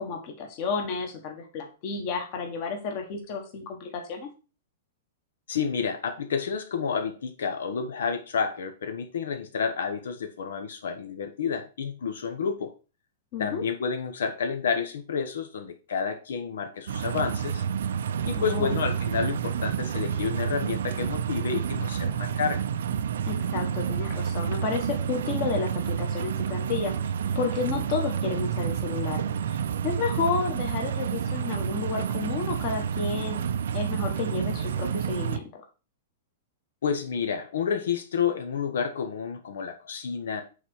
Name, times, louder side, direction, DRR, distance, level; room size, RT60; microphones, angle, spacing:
voice 1, 0.0-4.3 13.3-13.6 18.3-18.7 23.3-26.9 27.3-29.6 29.8-33.5 33.7-35.6, left 5 dB, 35° left, 3 dB, 1.4 m, -31 dB
voice 2, 5.5-12.7 13.4-17.6 18.2-22.6 36.8-40.4, left 6 dB, 85° left, 7 dB, 0.9 m, -30 dB
sound 1, 16.9-35.4, right 8 dB, 80° right, 0.5 m, -29 dB
5.8 x 4.0 x 4.7 m, 0.33 s
supercardioid pair, 170°, 0 cm